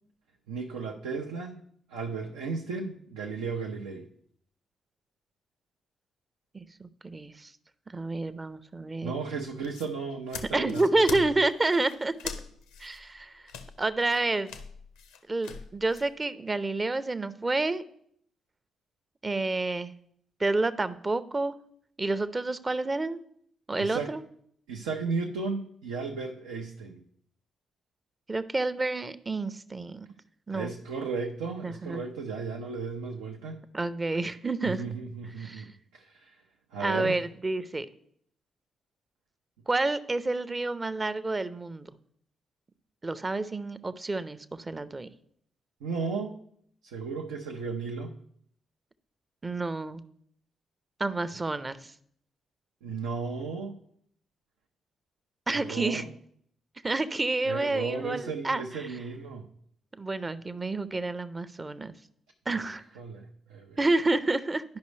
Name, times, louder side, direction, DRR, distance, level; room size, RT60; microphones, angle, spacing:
voice 1, 0.5-4.1 9.0-11.3 23.8-24.1 24.7-27.0 30.5-33.6 34.7-36.4 36.7-37.2 45.8-46.4 46.8-48.1 52.8-53.8 55.5-56.1 57.4-59.5 62.5-62.6 63.0-63.8, right 4 dB, 85° right, 1 dB, 0.5 m, -35 dB
voice 2, 6.5-7.5 7.9-9.1 10.5-12.1 12.8-13.4 13.8-14.5 15.3-17.8 19.2-19.9 20.4-21.5 22.0-23.2 23.7-24.2 28.3-30.1 30.5-30.7 31.6-32.0 33.7-34.8 35.4-35.7 36.8-37.9 39.7-41.9 43.0-45.1 49.4-50.0 51.0-51.9 55.5-56.0 56.8-58.9 60.0-61.9 62.5-62.8 63.8-64.6, right 2 dB, 30° right, 14 dB, 0.6 m, -29 dB
sound 1, 9.5-16.1, left 6 dB, 85° left, 0.6 m, -43 dB
11.5 x 5.3 x 3.2 m, 0.67 s
hypercardioid pair, 45°, 0 cm